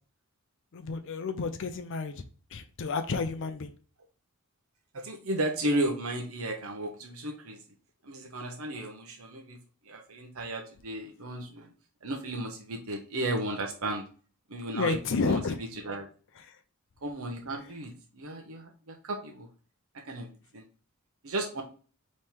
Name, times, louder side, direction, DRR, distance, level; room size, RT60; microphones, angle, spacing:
voice 1, 0.7-2.2 2.5-3.7 14.7-15.6 16.4-16.6, left 4 dB, 60° left, 0.5 m, -31 dB
voice 2, 4.9-7.6 8.0-9.6 9.8-11.7 12.0-14.0 14.5-15.0 15.3-15.4 15.8-16.1 17.0-19.5 20.0-20.3 20.5-20.6 21.2-21.6, right 1 dB, 70° right, 0.8 m, -34 dB
3.5 x 3.1 x 4.3 m
head